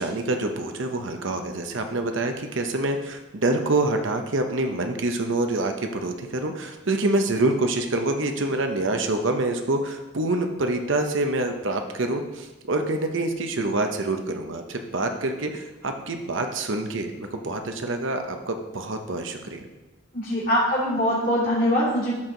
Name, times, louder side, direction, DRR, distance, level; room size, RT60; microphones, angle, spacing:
voice 1, 0.0-19.6, right 2 dB, 65° right, 5 dB, 0.9 m, -26 dB
voice 2, 20.1-22.1, equal, 40° left, -9 dB, 3.1 m, -22 dB
13.0 x 4.7 x 3.9 m, 1.1 s
head